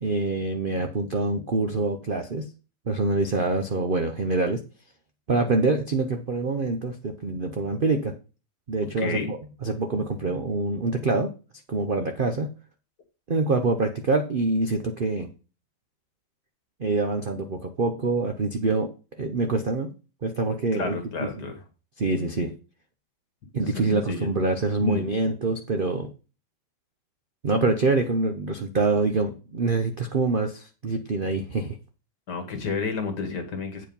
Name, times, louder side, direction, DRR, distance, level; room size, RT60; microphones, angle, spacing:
voice 1, 0.0-2.4 2.9-4.6 5.3-8.1 8.7-9.4 9.6-11.3 11.7-12.5 13.3-15.3 16.8-18.9 19.2-19.9 20.2-21.0 21.4-21.5 22.0-22.5 23.5-26.1 27.4-31.8, right 3 dB, 80° right, 5 dB, 0.4 m, -25 dB
voice 2, 9.0-9.3 20.7-21.6 23.8-24.3 24.8-25.1 32.3-33.9, left 5 dB, 60° left, 6 dB, 2.1 m, -30 dB
8.8 x 4.8 x 5.2 m, 0.34 s
omnidirectional pair, 2.1 m